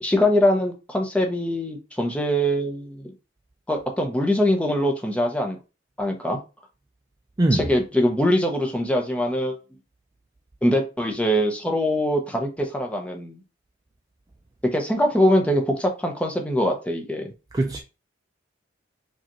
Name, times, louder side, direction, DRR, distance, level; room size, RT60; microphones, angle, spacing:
voice 1, 0.0-3.1 3.7-5.6 6.0-6.4 7.5-9.6 10.6-13.4 14.7-17.3, equal, 5° left, 0.8 m, -23 dB
voice 2, 7.4-7.7 17.5-17.8, right 2 dB, 20° right, 0.4 m, -21 dB
5.0 x 2.4 x 3.0 m
head